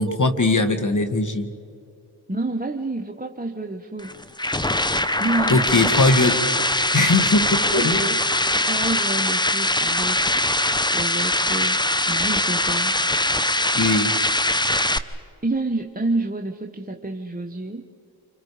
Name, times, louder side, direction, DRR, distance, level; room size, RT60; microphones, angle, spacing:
voice 1, 0.0-1.5 5.5-6.4 6.9-8.0 13.8-14.1, left 2 dB, 35° left, 8 dB, 2.2 m, -20 dB
voice 2, 2.3-4.2 5.2-5.9 7.7-10.2 10.9-13.0 15.4-17.8, right 2 dB, 15° right, 3 dB, 1.4 m, -29 dB
sound 1, 4.0-15.0, left 1 dB, 10° left, 0.9 m, -22 dB
28.5 x 26.0 x 5.1 m, 2.4 s
cardioid pair, 50°, 49 cm